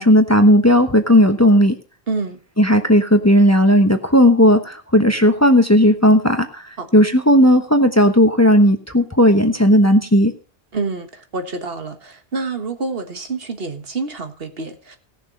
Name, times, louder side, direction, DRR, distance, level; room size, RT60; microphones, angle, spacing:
voice 1, 0.0-1.7 2.6-6.6 6.9-10.3, equal, 15° left, 7 dB, 1.0 m, -14 dB
voice 2, 2.1-2.4 6.8-6.9 10.7-15.0, right 3 dB, 65° right, 7 dB, 1.7 m, -27 dB
17.5 x 6.9 x 5.3 m, 0.36 s
omnidirectional pair, 1.1 m